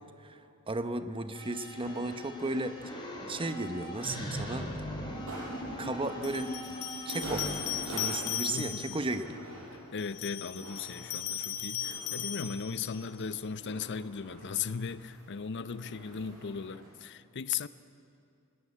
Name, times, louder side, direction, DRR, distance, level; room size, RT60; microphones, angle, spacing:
voice 1, 0.7-2.8 3.3-4.7 5.8-6.8 7.1-7.5 7.9-9.4, right 2 dB, 25° right, 9 dB, 0.9 m, -34 dB
sound 1, 1.3-7.8, equal, 20° left, 3.7 m, -40 dB
sound 2, 4.9-5.0 6.2-9.0 10.0-13.0, left 10 dB, 90° left, 2.1 m, -37 dB
sound 3, 5.1-16.9, right 1 dB, 70° right, 6.8 m, -46 dB
voice 2, 8.5-9.0 9.7-17.7, left 6 dB, 55° left, 15 dB, 0.6 m, -37 dB
19.0 x 19.0 x 8.6 m, 2.5 s
head